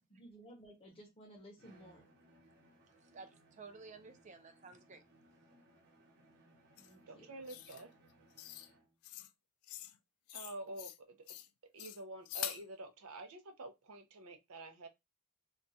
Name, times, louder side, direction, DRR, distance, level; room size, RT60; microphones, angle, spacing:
voice 1, 0.1-2.1 6.8-7.3, right 1 dB, 25° left, 0.6 m, -56 dB
Bowed string instrument, 1.6-9.0, right 1 dB, 50° right, 0.9 m, -66 dB
voice 2, 3.0-5.0, right 4 dB, 35° right, 0.4 m, -53 dB
sound 1, 6.8-6.9 7.5-7.8 8.4-8.7 9.0-9.3 9.6-10.0 10.3-11.0 11.3-11.5 11.8-12.6, left 13 dB, 85° left, 0.3 m, -45 dB
voice 3, 7.1-7.9 10.3-11.3 11.7-14.9, right 2 dB, 90° right, 0.6 m, -48 dB
2.4 x 2.3 x 4.0 m
head